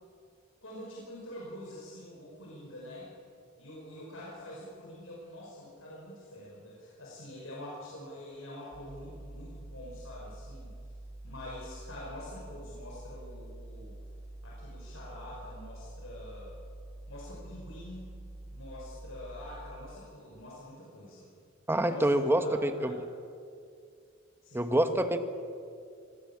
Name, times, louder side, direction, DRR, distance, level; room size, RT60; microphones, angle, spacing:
voice 1, 0.6-3.1 3.6-10.7 11.2-14.0 14.4-16.6 17.1-18.1 18.5-21.3 21.8-22.1 22.4-22.9 24.4-25.0, left 1 dB, 75° left, -5 dB, 6.0 m, -46 dB
sound 1, 8.7-19.8, right 1 dB, 25° left, 6.2 m, -46 dB
voice 2, 21.7-23.0 24.5-25.2, right 1 dB, 10° right, 8 dB, 1.3 m, -26 dB
25.5 x 19.5 x 7.4 m, 2.4 s
head